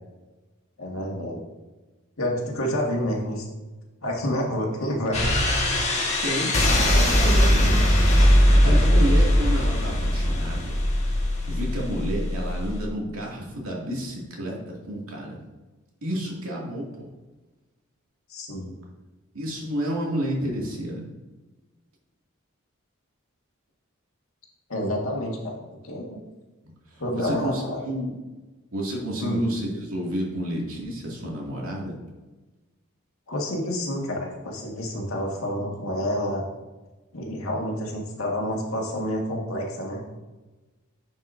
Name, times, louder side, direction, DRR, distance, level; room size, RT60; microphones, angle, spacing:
voice 1, 0.8-1.4 2.2-3.4 4.0-5.2 8.6-9.1 18.3-18.7 24.7-25.6 25.8-26.2 27.0-27.9 29.2-29.4 33.3-36.4 37.1-40.0, equal, 80° left, -1 dB, 1.8 m, -28 dB
sound 1, 5.1-12.8, equal, 30° left, 1.6 m, -20 dB
voice 2, 6.2-7.8 8.2-10.7 11.4-15.4 16.0-17.1 19.3-21.0 26.9-28.1 28.7-31.9, equal, 90° right, -3 dB, 2.3 m, -30 dB
10.5 x 5.6 x 2.6 m, 1.2 s
head